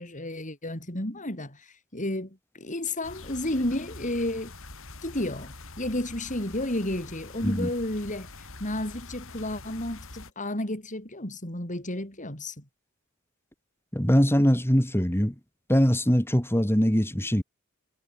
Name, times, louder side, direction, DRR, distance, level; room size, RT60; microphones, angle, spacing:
voice 1, 0.0-4.5 5.0-12.6, left 1 dB, 35° left, 7.1 m, -32 dB
sound 1, 3.0-10.3, left 3 dB, 65° left, 6.9 m, -45 dB
voice 2, 13.9-15.3 15.7-17.4, equal, 10° left, 4.0 m, -22 dB
head